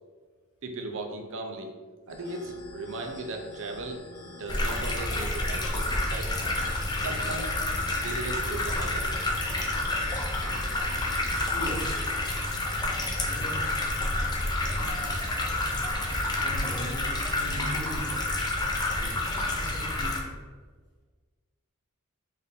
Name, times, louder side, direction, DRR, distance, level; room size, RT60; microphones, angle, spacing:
voice 1, 0.6-1.8 2.1-6.5 7.0-7.5 8.0-9.1, right 2 dB, 65° right, 4 dB, 0.5 m, -37 dB
sound 1, 2.1-12.1, left 2 dB, 80° left, 0.6 m, -47 dB
sound 2, 4.5-20.2, left 2 dB, 20° left, 0.5 m, -29 dB
voice 2, 6.0-6.5 7.6-7.7 11.4-12.3 13.3-13.6 14.5-15.3 15.7-18.2 18.9-20.3, right 1 dB, 55° left, -3 dB, 1.0 m, -40 dB
3.9 x 2.6 x 3.6 m, 1.5 s
head